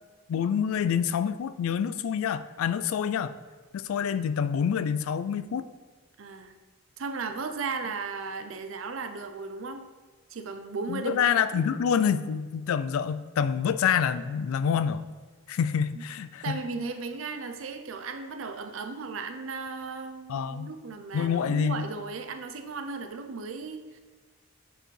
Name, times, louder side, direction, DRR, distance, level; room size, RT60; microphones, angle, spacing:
voice 1, 0.3-3.3 3.7-5.7 10.9-15.0 15.5-16.6 20.3-20.7 21.1-21.8, left 7 dB, 80° left, 13 dB, 0.3 m, -27 dB
voice 2, 6.2-6.5 7.0-9.8 10.3-11.7 15.9-16.0 16.4-24.0, right 4 dB, 70° right, 7 dB, 0.5 m, -36 dB
7.5 x 4.2 x 3.2 m, 1.4 s
head